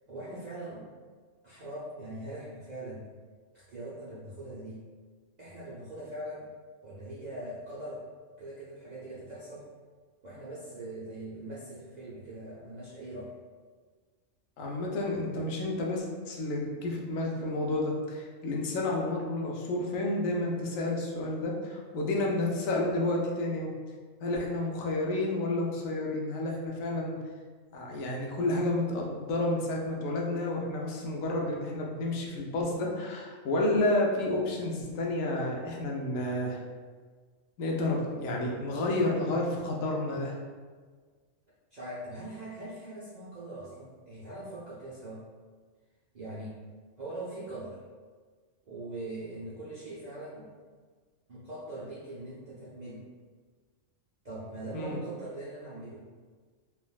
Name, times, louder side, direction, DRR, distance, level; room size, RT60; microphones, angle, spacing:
voice 1, 0.1-0.9 1.4-3.0 3.5-4.8 5.4-6.5 6.8-8.0 8.4-9.7 10.2-13.3 41.7-45.2 46.1-46.6 47.0-47.8 48.7-50.5 51.3-53.0 54.2-56.0, right 1 dB, 60° right, -8 dB, 0.4 m, -41 dB
voice 2, 14.6-23.7 24.2-27.2 27.7-36.6 37.6-40.3 54.7-55.0, left 2 dB, 85° left, -1 dB, 1.0 m, -30 dB
3.4 x 2.3 x 2.2 m, 1.5 s
omnidirectional pair, 1.3 m